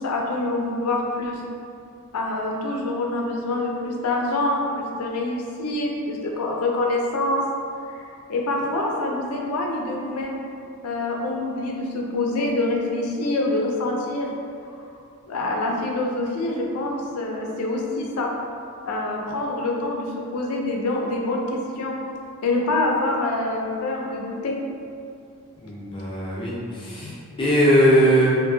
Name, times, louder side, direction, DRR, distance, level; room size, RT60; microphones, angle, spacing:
voice 1, 0.0-1.4 2.1-7.4 7.9-10.4 10.8-14.3 15.3-18.3 18.9-22.0 22.4-24.6 27.0-27.1, left 2 dB, 80° left, 0 dB, 0.4 m, -26 dB
voice 2, 25.6-27.1 27.4-28.3, equal, 25° left, -6 dB, 0.5 m, -19 dB
2.6 x 2.5 x 2.6 m, 2.5 s
head